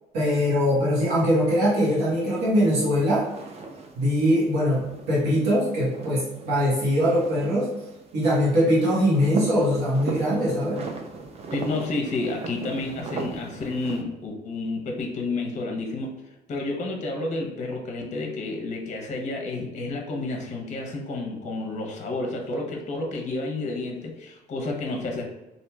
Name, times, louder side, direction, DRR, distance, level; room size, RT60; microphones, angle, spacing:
voice 1, 0.1-3.2 3.9-7.7 8.1-10.8, equal, 85° right, -7 dB, 1.1 m, -22 dB
sound 1, 1.4-14.0, right 4 dB, 35° right, 0.4 m, -39 dB
voice 2, 11.5-16.1 16.5-25.3, left 2 dB, 45° left, 1 dB, 0.7 m, -30 dB
3.0 x 2.6 x 2.2 m, 1.0 s
cardioid pair, 110°, 17 cm